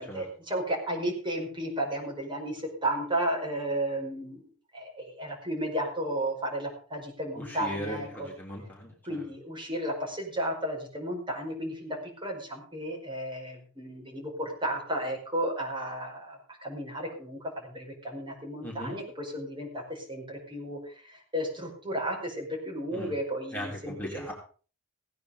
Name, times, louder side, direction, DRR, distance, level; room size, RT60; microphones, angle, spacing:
voice 1, 0.0-4.4 4.7-8.3 9.0-24.3, right 1 dB, 25° right, 0 dB, 5.2 m, -33 dB
voice 2, 7.4-9.2 18.6-18.9 22.9-23.1 23.5-24.3, equal, 10° left, -3 dB, 3.5 m, -38 dB
17.0 x 9.6 x 5.0 m, 0.40 s
head